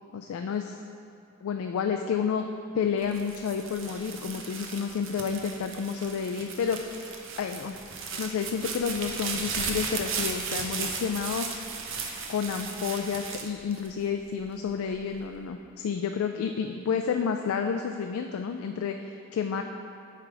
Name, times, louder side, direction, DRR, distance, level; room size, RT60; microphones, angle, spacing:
voice 1, 0.1-0.8 1.4-2.5 2.7-7.1 7.4-7.8 8.2-11.7 12.3-19.6, left 6 dB, 80° left, 5 dB, 0.3 m, -30 dB
sound 1, 3.0-14.4 14.9-15.5, right 5 dB, 65° right, 0.6 m, -36 dB
8.5 x 3.4 x 4.8 m, 2.7 s
head